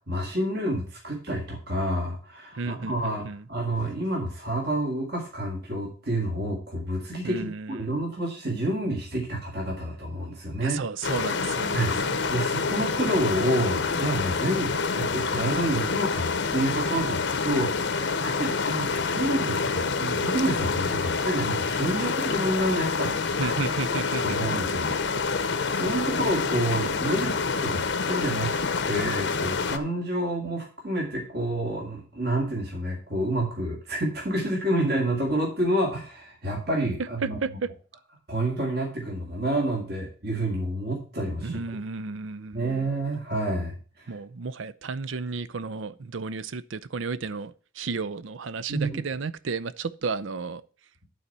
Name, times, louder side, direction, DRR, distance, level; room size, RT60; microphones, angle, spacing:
voice 1, 0.1-10.8 11.7-12.0 12.3-23.1 23.4-23.6 24.2-25.1 25.7-28.6 28.8-37.6 38.3-41.8 42.5-43.8 48.7-49.0, right 1 dB, 55° right, 2.2 m, -29 dB
voice 2, 2.6-3.4 7.2-7.9 10.6-12.1 23.4-24.7 37.2-37.7 41.4-42.9 44.1-50.6, right 4 dB, 70° right, 0.5 m, -33 dB
sound 1, 11.0-29.8, left 4 dB, 60° left, 0.8 m, -27 dB
11.0 x 4.3 x 6.7 m
head